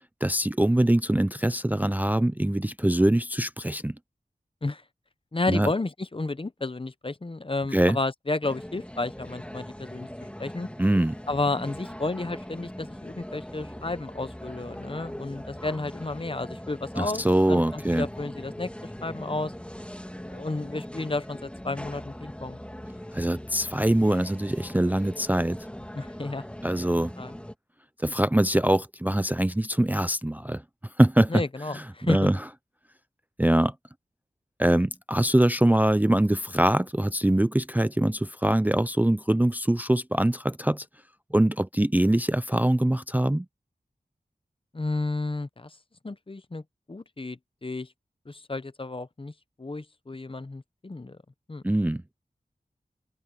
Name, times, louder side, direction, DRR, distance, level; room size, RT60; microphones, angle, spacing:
voice 1, 0.2-4.0 5.5-5.7 7.7-8.0 10.8-11.1 17.0-18.1 23.1-25.6 26.6-27.1 28.0-30.6 31.0-31.4 31.7-32.5 33.4-33.7 34.6-40.9 41.3-43.5 51.6-52.0, right 1 dB, 10° right, 0.5 m, -23 dB
voice 2, 5.3-10.1 10.4-10.7 11.3-17.2 17.5-19.5 20.2-22.6 25.9-26.4 27.2-27.3 31.3-32.3 44.7-45.7 46.0-46.6 46.9-47.9 48.3-49.3 49.6-51.2 51.5-51.6, left 2 dB, 35° left, 0.8 m, -32 dB
sound 1, 8.4-27.5, equal, 5° left, 1.7 m, -41 dB
open air
wide cardioid pair, 65°, 16 cm